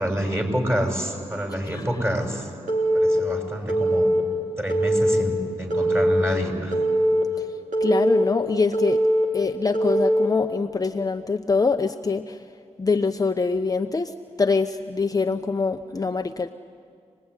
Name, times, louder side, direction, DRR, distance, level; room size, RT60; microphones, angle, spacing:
voice 1, 0.0-2.5 2.9-4.1 4.6-6.8, equal, 20° right, 3 dB, 6.6 m, -27 dB
Telephone, 2.7-3.2 3.7-4.2 4.7-5.2 5.7-6.2 6.7-7.2 7.7-8.2 8.7-9.2 9.7-10.3, right 1 dB, 80° right, 4.2 m, -21 dB
voice 2, 7.8-9.0 9.3-12.4 12.8-14.1 14.4-16.5, left 4 dB, 30° left, 6 dB, 0.9 m, -24 dB
26.5 x 19.5 x 9.9 m, 2.2 s
cardioid pair, 50°, 12 cm